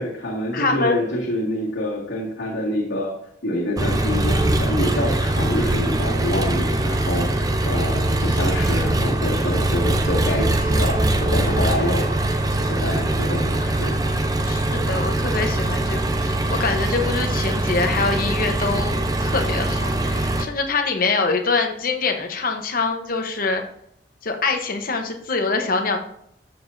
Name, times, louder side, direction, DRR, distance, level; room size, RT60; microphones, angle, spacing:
voice 1, 0.0-3.1 3.4-12.0 12.6-13.9, left 1 dB, 85° left, -6 dB, 2.0 m, -26 dB
voice 2, 0.5-1.2 14.4-23.6 24.2-26.0, left 4 dB, 50° left, 4 dB, 1.0 m, -24 dB
Engine, 3.8-20.5, right 1 dB, 20° right, 0.6 m, -22 dB
12.5 x 7.0 x 2.7 m, 0.71 s
head